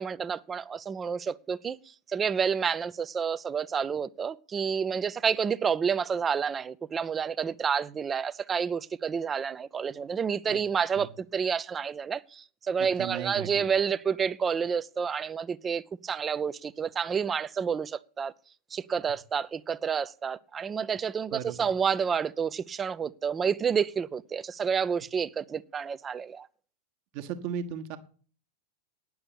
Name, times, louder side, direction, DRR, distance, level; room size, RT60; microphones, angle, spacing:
voice 1, 0.0-1.8 2.1-18.3 18.7-26.5, right 6 dB, 20° right, 0.5 m, -29 dB
voice 2, 12.8-13.7 21.3-21.7 27.1-28.0, right 9 dB, 45° right, 1.3 m, -36 dB
9.8 x 7.1 x 8.6 m
figure-of-eight pair, 90°, 0 cm